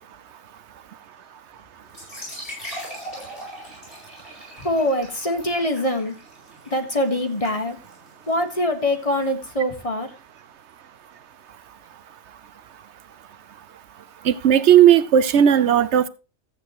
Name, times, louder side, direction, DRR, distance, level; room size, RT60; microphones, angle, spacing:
sound 1, 1.9-9.5, equal, 45° left, 8.3 m, -40 dB
voice 1, 4.2-6.1 6.6-7.8 8.3-10.2, left 1 dB, 25° left, 5 dB, 1.6 m, -24 dB
voice 2, 14.3-16.1, right 9 dB, 65° right, 15 dB, 0.9 m, -15 dB
14.5 x 8.7 x 3.0 m, 0.32 s
omnidirectional pair, 1.4 m